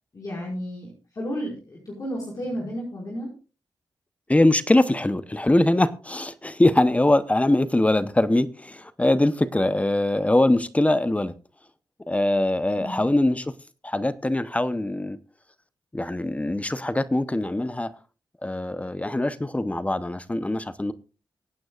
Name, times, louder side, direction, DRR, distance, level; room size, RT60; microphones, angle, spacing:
voice 1, 0.1-3.3 12.7-13.0, equal, 45° left, -4 dB, 5.5 m, -32 dB
voice 2, 4.3-11.3 12.1-13.5 13.8-15.2 15.9-17.9 18.4-20.9, left 1 dB, 15° left, 14 dB, 0.8 m, -22 dB
25.0 x 9.2 x 2.4 m, 0.34 s
cardioid pair, 80°, 8 cm